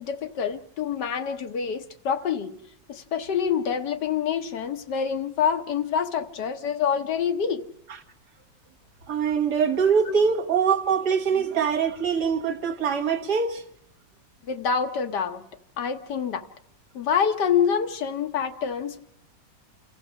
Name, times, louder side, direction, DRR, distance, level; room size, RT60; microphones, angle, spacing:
voice 1, 0.0-2.5 2.9-7.6 10.1-10.2 14.5-15.4 15.8-16.4 16.9-19.0, left 7 dB, 70° left, 1.6 m, -26 dB
voice 2, 9.1-13.6, right 6 dB, 65° right, 1.9 m, -23 dB
28.5 x 15.0 x 6.3 m
omnidirectional pair, 1.9 m